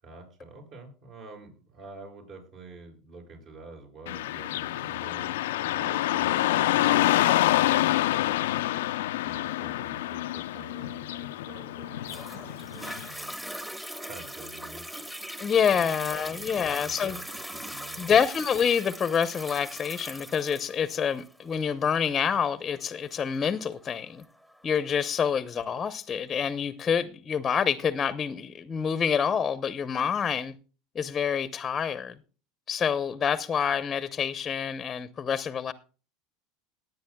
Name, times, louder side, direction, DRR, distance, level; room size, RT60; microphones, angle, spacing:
voice 1, 0.0-8.5 9.2-13.3 14.0-14.8 15.7-17.2 17.5-18.1, right 3 dB, 50° right, 6.7 m, -47 dB
Car passing by / Traffic noise roadway noise, 4.1-13.1, left 15 dB, 80° left, 0.5 m, -27 dB
Toilet flush, 12.1-25.1 25.7-25.8, equal, 5° right, 1.3 m, -41 dB
voice 2, 15.4-17.2 18.0-24.2 24.6-30.5 30.9-32.1 32.7-35.7, left 7 dB, 30° left, 0.8 m, -27 dB
19.0 x 9.5 x 2.3 m
hypercardioid pair, 100°, 0 cm